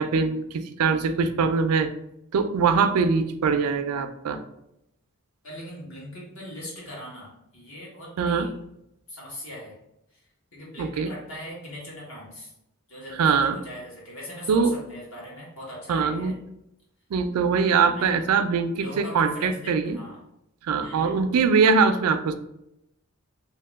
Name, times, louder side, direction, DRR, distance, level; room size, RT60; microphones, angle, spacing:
voice 1, 0.0-1.9 2.3-4.4 8.2-8.5 10.8-11.1 13.2-13.6 14.5-14.7 15.9-16.3 17.1-20.0 20.6-22.4, right 5 dB, 85° right, 9 dB, 0.4 m, -22 dB
voice 2, 5.4-8.5 9.1-9.8 10.1-12.5 12.9-16.3 17.7-18.2 18.8-20.2 20.8-21.2, equal, 65° left, -5 dB, 1.5 m, -40 dB
3.0 x 2.8 x 3.4 m, 0.83 s
head